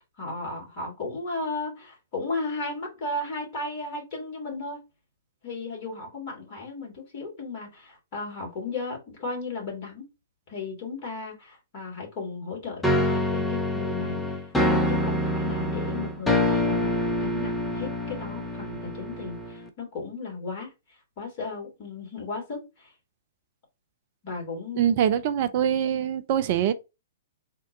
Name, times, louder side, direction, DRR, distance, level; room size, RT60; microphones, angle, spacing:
voice 1, 0.2-4.8 5.4-10.1 10.5-20.7 21.2-22.9 24.2-24.9, left 3 dB, 35° left, 2.0 m, -35 dB
sound 1, 12.8-19.7, left 1 dB, 5° left, 0.6 m, -26 dB
voice 2, 24.8-26.7, right 9 dB, 40° right, 0.3 m, -23 dB
3.6 x 2.2 x 4.0 m
figure-of-eight pair, 110°, 0 cm